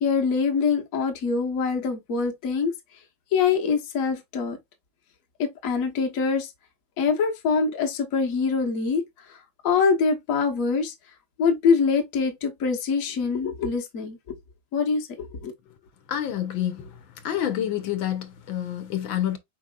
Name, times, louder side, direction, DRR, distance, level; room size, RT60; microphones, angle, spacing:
voice 1, 0.0-2.7 3.3-4.6 5.4-6.5 7.0-9.0 9.3-9.4 9.6-10.9 11.4-14.3 14.7-15.5, left 5 dB, 50° left, 1.3 m, -24 dB
voice 2, 16.1-16.9 17.2-19.4, left 11 dB, 80° left, 1.6 m, -28 dB
5.2 x 4.2 x 2.3 m
omnidirectional pair, 2.1 m